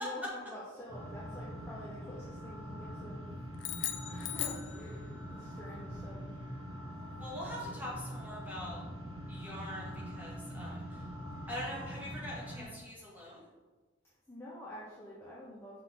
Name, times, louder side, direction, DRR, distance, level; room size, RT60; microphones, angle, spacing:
voice 1, 0.0-3.2 4.0-6.4 14.3-15.8, left 1 dB, 10° left, -7 dB, 1.0 m, -47 dB
sound 1, 0.9-12.6, equal, 80° right, 2.1 m, -44 dB
sound 2, 3.6-5.4, left 12 dB, 65° left, 0.5 m, -39 dB
voice 2, 7.2-8.8 9.3-11.0 11.5-13.4, left 1 dB, 10° right, -7 dB, 2.1 m, -43 dB
6.0 x 5.8 x 3.9 m, 1.3 s
head